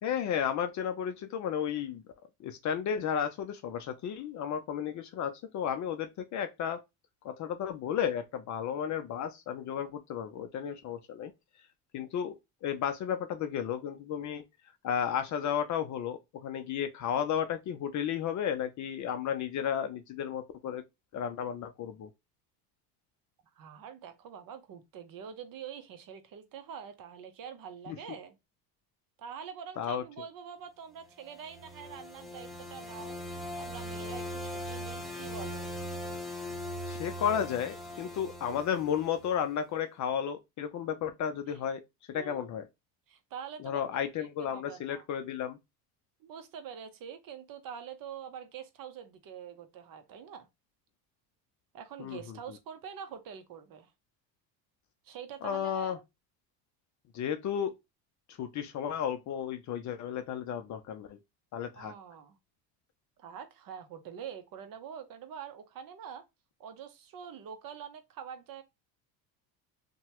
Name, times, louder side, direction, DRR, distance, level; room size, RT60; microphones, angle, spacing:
voice 1, 0.0-2.0 2.4-6.8 7.2-11.3 11.9-14.4 14.8-20.8 21.1-22.1 27.9-28.0 29.8-30.0 36.9-41.8 42.1-42.7 43.6-45.6 52.0-52.4 55.4-56.0 57.1-57.7 58.3-61.2 61.5-61.9, left 8 dB, 40° left, 0.4 m, -33 dB
voice 2, 23.6-28.4 29.2-33.2 33.6-35.7 41.5-41.6 42.1-42.5 43.1-43.8 44.2-45.1 46.2-50.5 51.7-53.9 55.0-56.0 61.8-62.4 63.2-66.2 66.6-68.6, right 8 dB, 45° right, 0.7 m, -45 dB
sound 1, 31.2-39.4, equal, ahead, 0.8 m, -40 dB
2.8 x 2.2 x 2.9 m
supercardioid pair, 90°, 49 cm